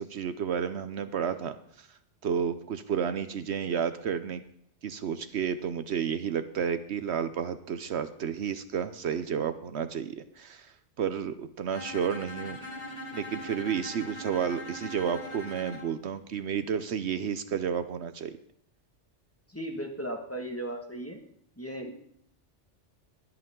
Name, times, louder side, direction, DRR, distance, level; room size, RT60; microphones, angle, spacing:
voice 1, 0.0-1.9 2.2-4.4 4.8-12.6 13.1-18.4, right 7 dB, 70° right, 11 dB, 1.0 m, -31 dB
Bowed string instrument, 11.7-15.9, left 1 dB, 55° left, 2.4 m, -41 dB
voice 2, 19.5-21.2 21.6-21.9, right 1 dB, 10° left, 2 dB, 1.7 m, -36 dB
21.5 x 8.3 x 3.7 m, 0.67 s
omnidirectional pair, 1.2 m